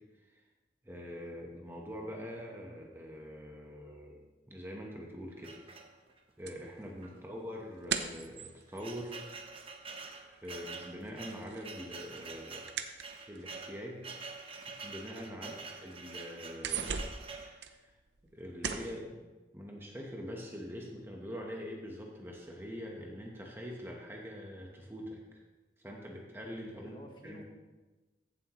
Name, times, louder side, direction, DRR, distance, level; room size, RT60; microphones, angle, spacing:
voice 1, 0.8-4.2 4.5-5.6 6.4-9.2 10.0-12.6 13.0-14.0 14.8-16.9 17.4-17.9 18.3-19.2 19.5-25.4 25.8-26.9 27.2-27.4, equal, 10° right, -1 dB, 1.1 m, -44 dB
sound 1, 5.4-6.3 7.0-7.2 7.4-7.5 8.2-17.6, right 4 dB, 30° right, 0.8 m, -46 dB
sound 2, 6.5-10.2 10.4-13.7 14.4-14.5 15.0-15.1 15.4-16.0 16.3-18.3 18.6-19.0, right 6 dB, 65° right, 0.7 m, -40 dB
voice 2, 26.7-27.4, equal, 25° left, 1 dB, 1.3 m, -53 dB
15.0 x 7.8 x 3.1 m, 1.2 s
head